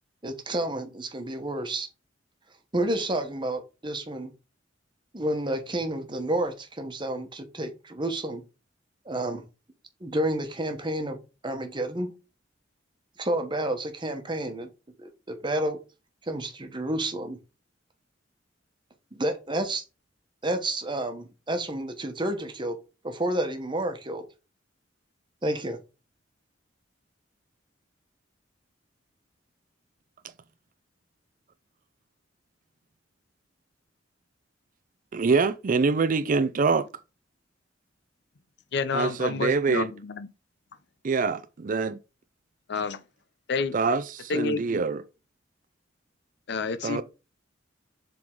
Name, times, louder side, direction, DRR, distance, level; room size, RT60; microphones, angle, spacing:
voice 1, 0.2-1.9 2.7-4.3 5.1-8.4 9.0-9.4 10.0-12.1 13.2-14.7 15.0-15.8 16.2-17.4 19.1-19.8 20.4-22.8 23.0-24.2 25.4-25.8, right 1 dB, 25° right, 1.2 m, -30 dB
voice 2, 35.1-36.9 38.9-39.9 41.0-42.0 43.7-45.0 46.8-47.0, right 4 dB, 45° right, 0.4 m, -25 dB
voice 3, 38.7-40.3 42.7-43.0 43.5-43.8 44.3-44.8 46.5-47.0, left 5 dB, 60° left, 0.6 m, -29 dB
7.6 x 3.7 x 3.8 m
head